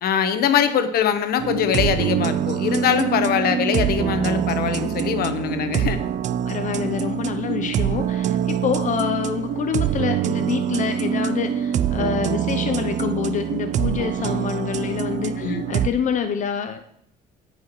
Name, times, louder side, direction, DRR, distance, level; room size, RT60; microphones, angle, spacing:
voice 1, 0.0-6.0 7.6-7.7 15.4-15.6, left 8 dB, 65° left, 8 dB, 1.0 m, -22 dB
sound 1, 1.4-15.9, right 9 dB, 45° right, 0.4 m, -24 dB
voice 2, 6.5-16.9, left 8 dB, 50° left, 7 dB, 0.6 m, -26 dB
16.5 x 5.8 x 3.1 m, 0.70 s
cardioid pair, 110°, 17 cm